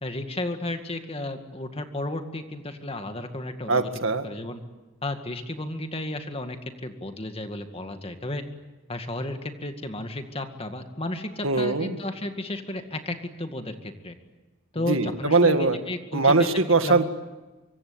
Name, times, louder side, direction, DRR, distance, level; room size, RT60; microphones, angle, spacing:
voice 1, 0.0-3.9 4.2-4.6 5.0-8.4 8.9-14.2 14.7-16.5 16.8-17.0, left 1 dB, 25° left, 6 dB, 2.1 m, -33 dB
voice 2, 3.7-4.2 11.4-12.0 14.9-15.8 16.1-17.1, right 3 dB, 70° right, 8 dB, 1.9 m, -21 dB
25.5 x 24.0 x 8.8 m, 1.1 s
head